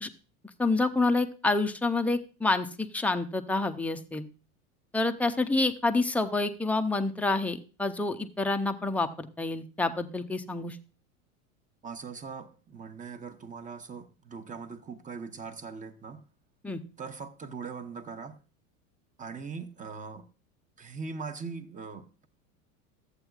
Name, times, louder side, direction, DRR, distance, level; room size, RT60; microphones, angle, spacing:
voice 1, 0.6-4.3 4.9-10.8 16.6-16.8, left 3 dB, 5° left, 5 dB, 0.3 m, -28 dB
voice 2, 11.8-16.2 17.0-18.4 19.2-20.2 20.8-22.3, right 5 dB, 15° right, 11 dB, 0.8 m, -41 dB
13.5 x 8.1 x 2.4 m, 0.34 s
hypercardioid pair, 90°, 44 cm